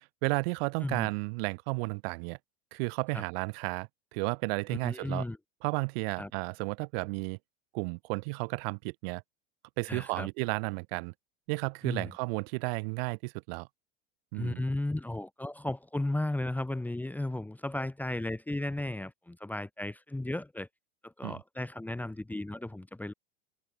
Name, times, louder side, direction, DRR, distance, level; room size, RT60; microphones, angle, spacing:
voice 1, 0.2-2.4 2.7-5.2 5.6-7.4 7.7-9.2 9.8-11.1 11.5-13.7 14.3-14.6 21.2-21.4, right 29 dB, 60° right, 1.4 m, -33 dB
voice 2, 4.7-5.4 6.2-6.3 9.9-10.3 11.8-12.1 14.3-20.7 21.0-23.1, left 1 dB, 5° left, 1.4 m, -35 dB
open air
hypercardioid pair, 105°, 33 cm